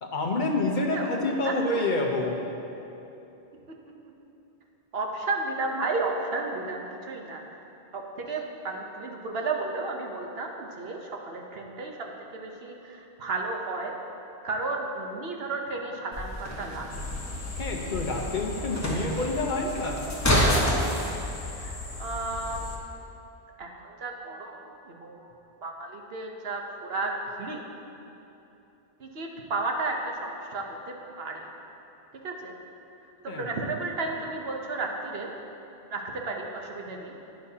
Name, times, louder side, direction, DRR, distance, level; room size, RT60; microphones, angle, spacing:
voice 1, 0.0-2.4 17.6-20.1 33.3-33.5, left 2 dB, 50° left, 1 dB, 0.9 m, -28 dB
voice 2, 1.4-1.8 4.9-7.4 7.9-13.9 14.4-17.0 21.5-22.7 23.6-25.3 25.6-27.6 29.0-31.5 32.2-32.5 33.2-35.3 35.9-37.1, right 3 dB, 70° right, 1 dB, 1.1 m, -33 dB
sound 1, 16.1-21.1, equal, 15° left, 1.2 m, -28 dB
sound 2, 16.9-22.8, left 2 dB, 85° left, 1.4 m, -37 dB
11.5 x 9.4 x 2.8 m, 2.9 s
omnidirectional pair, 1.1 m